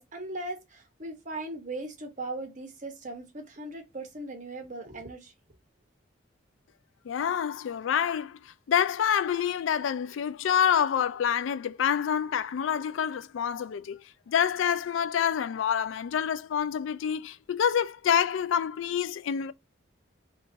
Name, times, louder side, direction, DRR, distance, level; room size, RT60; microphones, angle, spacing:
voice 1, 0.0-5.3, right 2 dB, 40° right, 0.9 m, -38 dB
voice 2, 7.1-8.4 8.7-14.0 14.3-19.5, left 8 dB, 85° left, 0.3 m, -27 dB
3.1 x 2.5 x 3.8 m
head